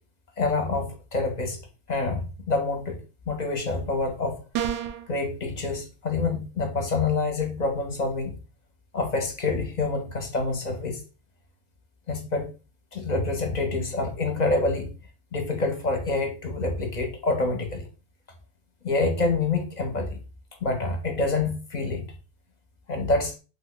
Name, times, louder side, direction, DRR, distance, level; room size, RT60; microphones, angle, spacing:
voice 1, 0.4-1.6 1.9-3.0 3.3-4.4 5.1-8.4 8.9-11.0 12.1-12.5 12.9-14.9 15.3-17.9 18.8-20.2 20.6-22.1 22.9-23.3, left 3 dB, 45° left, 0.6 m, -27 dB
sound 1, 4.5-5.1, right 10 dB, 85° right, 0.9 m, -28 dB
3.1 x 2.1 x 3.8 m
omnidirectional pair, 1.2 m